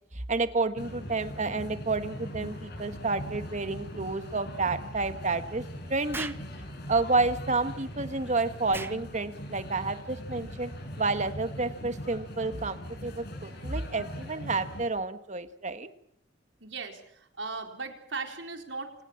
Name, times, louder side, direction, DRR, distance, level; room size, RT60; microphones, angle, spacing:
voice 1, 0.3-5.6 5.9-6.3 6.9-10.7 11.0-15.9, right 3 dB, 40° right, 10 dB, 1.7 m, -30 dB
sound 1, 0.8-14.8, equal, 60° left, 7.0 m, -41 dB
Explosion, 6.1-6.5 8.7-9.0, right 3 dB, 10° right, 1.0 m, -37 dB
voice 2, 16.6-19.0, right 4 dB, 80° right, 5 dB, 4.4 m, -38 dB
27.5 x 20.0 x 7.4 m, 0.69 s
head